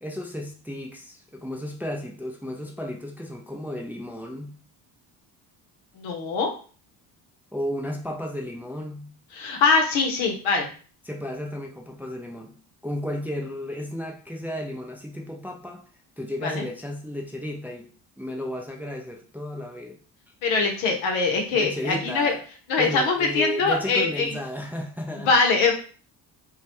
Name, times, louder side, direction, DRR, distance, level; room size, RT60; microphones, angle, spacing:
voice 1, 0.0-4.5 7.5-9.1 11.0-12.5 12.8-15.9 16.2-17.9 18.2-20.0 21.5-22.4 22.8-25.3, left 1 dB, 5° right, 0 dB, 0.4 m, -33 dB
voice 2, 5.9-6.5 9.3-10.7 16.4-16.7 20.4-22.3 22.7-24.3 25.2-25.7, left 4 dB, 80° left, 2 dB, 0.8 m, -22 dB
2.3 x 2.1 x 2.9 m, 0.40 s
supercardioid pair, 60°, 47 cm